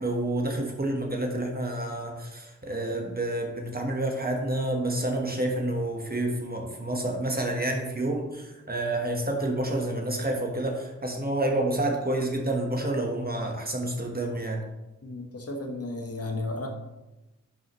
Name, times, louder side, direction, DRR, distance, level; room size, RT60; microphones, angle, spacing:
voice 1, 0.0-14.6, right 1 dB, 30° right, 1 dB, 1.3 m, -29 dB
voice 2, 15.0-16.7, left 2 dB, 50° left, 2 dB, 1.4 m, -33 dB
11.0 x 5.7 x 3.1 m, 1.0 s
wide cardioid pair, 100°, 32 cm